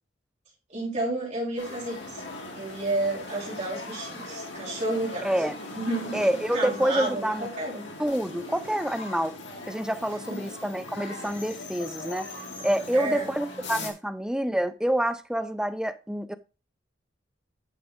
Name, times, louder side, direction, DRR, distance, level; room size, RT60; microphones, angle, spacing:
voice 1, 0.7-2.2 2.5-5.3 5.7-6.2 6.5-7.9 10.3-10.5 12.9-13.3, right 2 dB, 40° right, 4.1 m, -31 dB
sound 1, 1.6-13.9, left 2 dB, 70° left, 2.2 m, -40 dB
voice 2, 5.2-5.6 6.1-7.5 8.0-9.4 9.7-12.3 12.6-16.3, right 1 dB, 5° right, 0.5 m, -27 dB
9.6 x 6.2 x 3.6 m
head